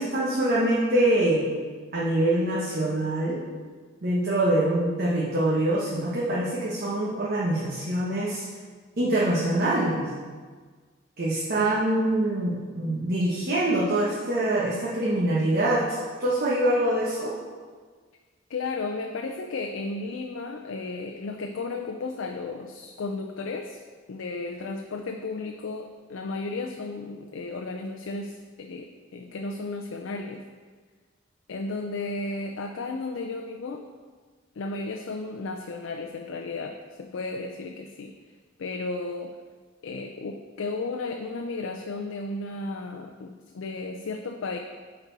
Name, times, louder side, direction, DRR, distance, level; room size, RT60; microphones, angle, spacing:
voice 1, 0.0-1.4 1.9-3.4 4.0-8.4 9.0-10.1 11.2-17.4, right 1 dB, 50° right, -7 dB, 1.1 m, -24 dB
voice 2, 18.5-23.8 24.1-30.4 31.5-33.8 34.6-38.1 38.6-39.3 39.8-44.6, left 3 dB, 85° left, 4 dB, 0.5 m, -34 dB
9.0 x 4.3 x 4.0 m, 1.5 s
head